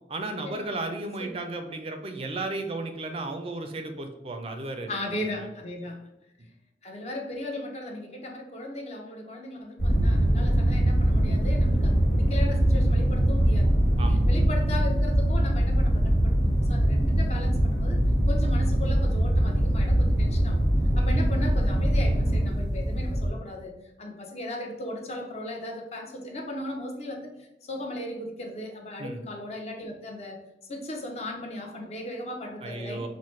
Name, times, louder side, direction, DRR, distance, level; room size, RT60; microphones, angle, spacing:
voice 1, 0.1-4.9 14.0-14.2 20.9-21.3 29.0-29.2 32.6-33.1, right 2 dB, 30° right, 5 dB, 0.4 m, -34 dB
voice 2, 4.9-6.0 6.8-13.7 14.3-18.0 18.3-20.6 21.0-27.3 27.6-30.4 30.7-33.1, left 1 dB, 35° left, 2 dB, 0.6 m, -37 dB
sound 1, 9.8-23.3, right 1 dB, 75° left, 1.4 m, -22 dB
5.6 x 2.1 x 3.1 m, 0.95 s
head